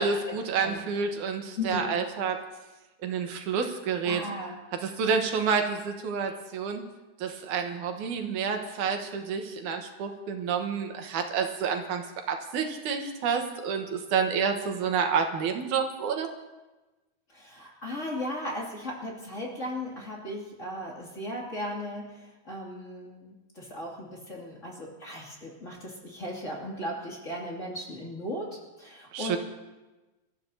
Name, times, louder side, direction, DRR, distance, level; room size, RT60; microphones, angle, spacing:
voice 1, 0.0-2.4 3.0-4.2 4.8-6.8 7.2-12.0 12.3-16.3 29.1-29.4, right 6 dB, 85° right, 4 dB, 2.7 m, -29 dB
voice 2, 1.6-1.9 4.0-4.5 17.3-29.4, left 1 dB, 25° left, -3 dB, 2.5 m, -37 dB
27.0 x 14.0 x 2.8 m, 1.1 s
omnidirectional pair, 3.5 m